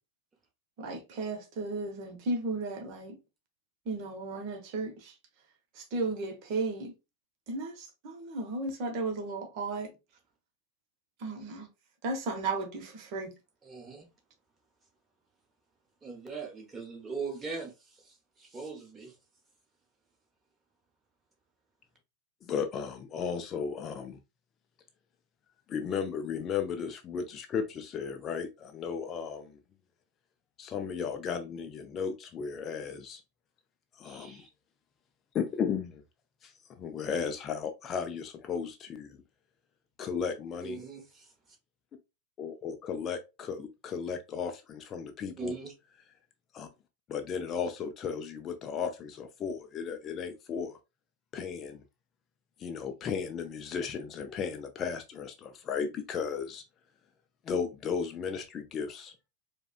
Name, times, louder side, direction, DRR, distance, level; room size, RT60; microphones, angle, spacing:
voice 1, 0.8-3.2 3.9-5.1 5.7-6.9 7.5-9.9 11.2-11.7 12.0-13.3, right 3 dB, 45° right, 0.9 m, -34 dB
voice 2, 13.6-14.1 16.0-19.1 34.0-34.5 40.6-41.3 45.4-45.7, right 5 dB, 15° right, 1.1 m, -41 dB
voice 3, 22.4-24.2 25.7-29.6 30.6-33.2 33.9-34.4 35.3-36.0 36.4-39.2 40.0-40.8 42.4-45.5 46.5-46.7 47.1-50.8 51.3-51.8 52.6-56.6 57.4-59.1, left 6 dB, 30° left, 0.4 m, -35 dB
4.7 x 2.2 x 2.3 m
figure-of-eight pair, 90°, 0 cm